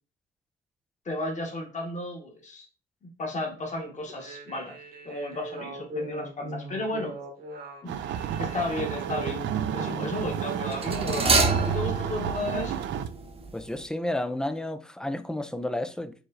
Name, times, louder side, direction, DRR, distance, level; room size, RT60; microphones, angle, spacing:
voice 1, 1.0-2.6 3.0-4.8 5.0-7.1 7.8-7.9 8.4-9.4 9.7-12.8, left 2 dB, 35° left, 1.3 m, -33 dB
sound 1, 4.1-10.8, right 2 dB, 45° right, 1.1 m, -40 dB
sound 2, 7.9-13.1, right 9 dB, 70° right, 0.4 m, -32 dB
sound 3, 8.3-8.6 10.7-13.5 13.8-13.9, right 4 dB, 30° right, 0.7 m, -27 dB
voice 2, 13.5-16.1, left 1 dB, 5° left, 0.3 m, -31 dB
4.8 x 3.1 x 2.5 m
cardioid pair, 90°, 20 cm